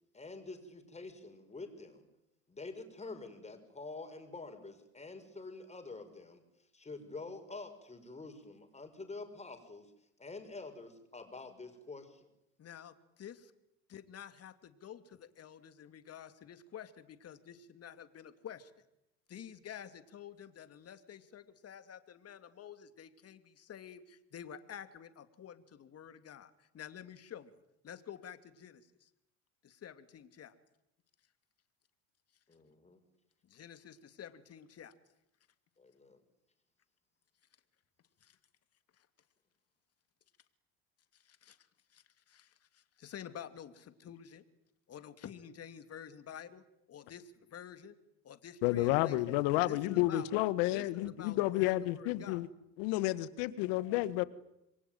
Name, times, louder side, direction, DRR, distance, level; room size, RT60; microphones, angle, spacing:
voice 1, 0.1-2.1 2.5-6.4 6.7-9.9 10.2-12.3 32.5-33.0 35.8-36.2, left 3 dB, 15° left, 5.9 m, -47 dB
voice 2, 12.6-13.5 13.9-18.7 19.3-27.5 27.8-29.1 29.6-30.5 33.4-34.9 38.2-38.4 39.0-39.1 41.1-41.6 41.9-44.4 44.9-47.9 48.2-49.4 49.7-50.3 50.7-52.4, left 9 dB, 40° left, 2.8 m, -50 dB
voice 3, 48.6-52.5 52.8-54.2, left 16 dB, 75° left, 1.8 m, -31 dB
27.5 x 22.5 x 9.3 m
supercardioid pair, 95°, 37 cm